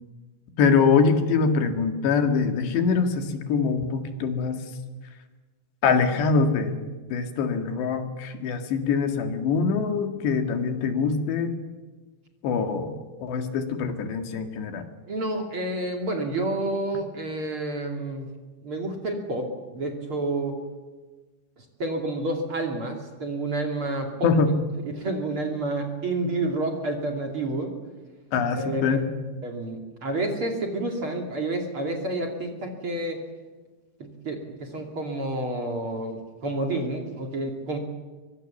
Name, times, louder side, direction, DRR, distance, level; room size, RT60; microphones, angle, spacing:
voice 1, 0.6-4.6 5.8-11.5 12.4-14.8 24.2-24.5 28.3-29.1, left 5 dB, 85° left, 6 dB, 4.2 m, -24 dB
voice 2, 15.1-18.3 18.6-20.6 21.8-24.3 24.8-27.7 28.5-29.0 29.4-33.2 34.0-37.8, right 2 dB, 35° right, 2 dB, 2.9 m, -29 dB
24.5 x 23.0 x 7.2 m, 1.3 s
omnidirectional pair, 4.8 m